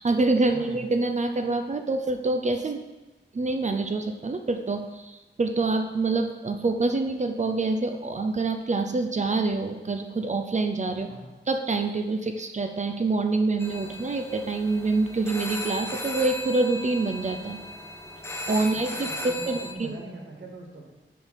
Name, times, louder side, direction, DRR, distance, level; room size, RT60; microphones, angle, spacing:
voice 1, 0.0-2.8 3.3-11.1 11.5-17.6 18.5-20.0, right 3 dB, 35° right, 6 dB, 0.6 m, -26 dB
voice 2, 11.0-11.3 18.7-20.9, right 2 dB, 75° right, -2 dB, 1.9 m, -42 dB
sound 1, 13.6-19.7, left 1 dB, 15° left, 0.7 m, -36 dB
5.2 x 5.1 x 5.7 m, 1.1 s
wide cardioid pair, 110°, 20 cm